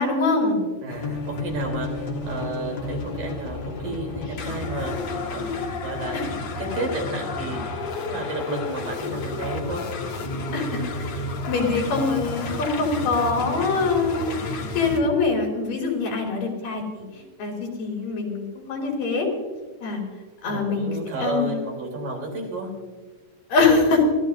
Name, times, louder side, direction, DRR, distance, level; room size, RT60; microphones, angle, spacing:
voice 1, 0.0-0.6 6.1-6.2 10.5-11.1 11.5-19.3 19.8-20.0 20.4-21.6 23.5-24.0, left 4 dB, 80° left, -1 dB, 4.6 m, -24 dB
voice 2, 0.8-5.6 5.8-7.8 8.0-9.8 20.4-22.7, right 2 dB, 90° right, 0 dB, 5.2 m, -32 dB
sound 1, 0.9-15.0, left 3 dB, 55° left, 2.5 m, -31 dB
26.5 x 14.5 x 2.6 m, 1.3 s
omnidirectional pair, 3.8 m